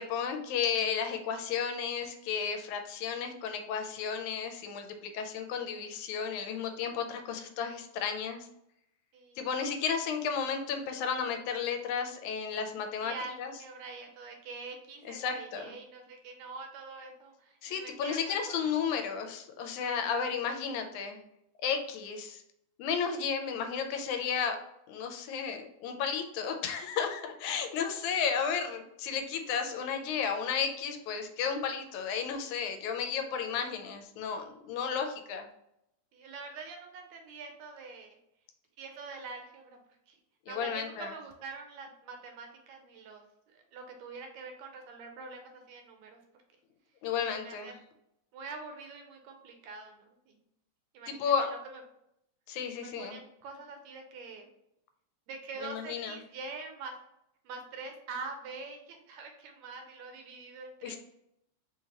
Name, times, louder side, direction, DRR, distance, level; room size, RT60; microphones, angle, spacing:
voice 1, 0.0-4.9 5.1-8.5 9.4-13.5 15.1-15.7 17.6-21.2 21.6-22.4 22.8-24.6 24.9-35.5 40.5-41.1 47.0-47.8 51.1-51.5 52.5-53.2 55.6-56.2 60.8-61.0, left 6 dB, 85° left, 6 dB, 2.0 m, -33 dB
voice 2, 13.0-18.7 27.5-28.0 36.1-38.2 38.8-39.8 40.1-40.2 40.5-43.2 43.5-46.2 47.2-47.7 48.3-50.4 50.9-51.8 52.8-54.5 55.3-57.0 57.5-61.0, right 4 dB, 80° right, 3 dB, 1.8 m, -45 dB
5.2 x 2.8 x 2.8 m, 0.80 s
omnidirectional pair, 3.4 m